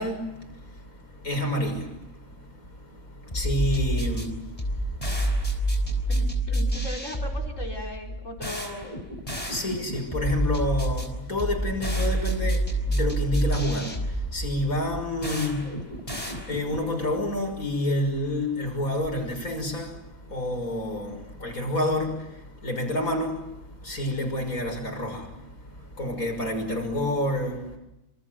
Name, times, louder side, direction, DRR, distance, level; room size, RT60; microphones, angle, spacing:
voice 1, 0.0-6.1 9.3-27.8, left 1 dB, 90° left, 6.7 m, -29 dB
sound 1, 3.3-16.9, right 1 dB, 25° left, 5.3 m, -28 dB
voice 2, 6.1-8.9, equal, 65° left, 5.4 m, -38 dB
27.5 x 27.5 x 7.9 m
omnidirectional pair, 1.4 m